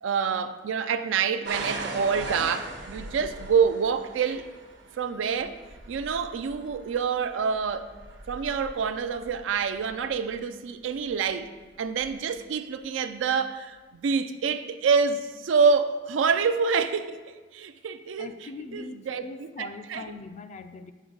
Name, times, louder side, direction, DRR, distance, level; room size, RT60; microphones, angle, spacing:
voice 1, 0.0-4.5 5.0-5.6 5.9-7.9 8.3-11.5 11.8-19.2 19.6-20.0, right 5 dB, 85° right, 0.4 m, -27 dB
sound 1, 1.4-10.2 11.0-11.4 12.0-12.1, right 2 dB, 65° right, 0.8 m, -40 dB
voice 2, 18.2-20.9, left 4 dB, 40° left, 0.3 m, -41 dB
6.3 x 4.3 x 3.8 m
head